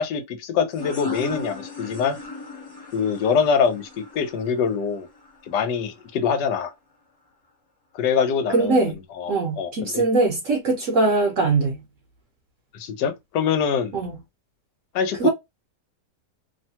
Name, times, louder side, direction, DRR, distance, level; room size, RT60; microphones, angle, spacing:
voice 1, 0.0-2.2 2.9-5.1 5.5-6.7 7.9-10.0 12.7-13.9 14.9-15.3, left 6 dB, 85° left, 1.3 m, -24 dB
sound 1, 0.7-6.1, left 3 dB, 30° left, 0.4 m, -37 dB
voice 2, 8.5-9.0 9.3-11.8 13.9-14.2 15.2-15.3, right 3 dB, 60° right, 0.9 m, -21 dB
3.0 x 2.2 x 2.7 m
omnidirectional pair, 1.8 m